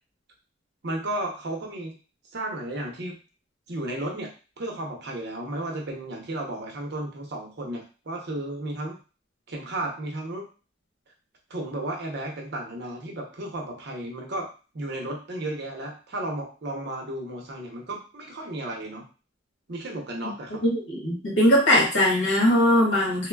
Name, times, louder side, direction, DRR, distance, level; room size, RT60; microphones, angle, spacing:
voice 1, 0.8-2.0 2.3-3.2 3.7-4.3 4.6-9.0 9.5-10.5 11.5-14.5 14.7-19.1 19.7-20.6, right 1 dB, 60° right, 0 dB, 0.7 m, -33 dB
voice 2, 20.6-23.3, left 1 dB, 75° left, -3 dB, 1.2 m, -20 dB
3.0 x 2.1 x 2.2 m, 0.35 s
head